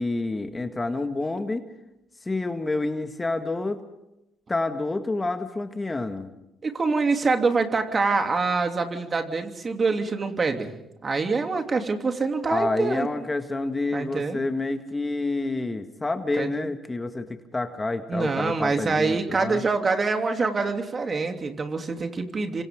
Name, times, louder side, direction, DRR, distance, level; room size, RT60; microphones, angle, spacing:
voice 1, 0.0-1.7 2.2-3.8 4.5-6.3 12.5-19.6, left 2 dB, 20° left, 7 dB, 2.0 m, -28 dB
voice 2, 6.6-10.7 11.0-13.1 13.9-14.4 16.4-16.7 18.1-22.6, right 4 dB, 35° right, 5 dB, 3.0 m, -25 dB
29.0 x 25.5 x 3.8 m, 0.88 s
hypercardioid pair, 60°, 0 cm